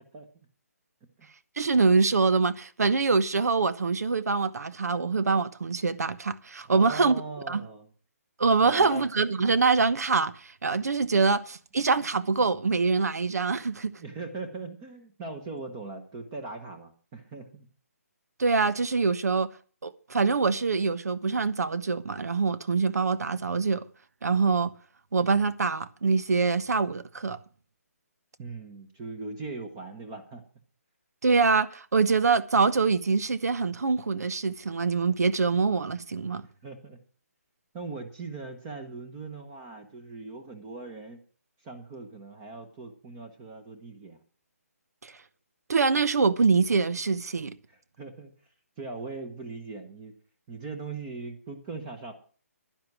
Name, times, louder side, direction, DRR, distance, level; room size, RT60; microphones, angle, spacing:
voice 1, 1.6-7.2 7.5-7.6 8.4-13.9 18.4-19.5 19.8-23.9 24.2-24.7 25.1-27.4 31.2-36.4 45.0-45.1 45.7-47.6, right 4 dB, 80° right, 1.1 m, -24 dB
voice 2, 6.7-7.9 8.6-9.1 14.0-17.7 28.4-30.4 36.6-37.0 37.7-41.2 41.6-44.2 47.7-48.5 48.8-50.1 50.5-52.1, right 3 dB, 15° right, 1.1 m, -40 dB
11.0 x 10.5 x 6.0 m
hypercardioid pair, 170°, 9 cm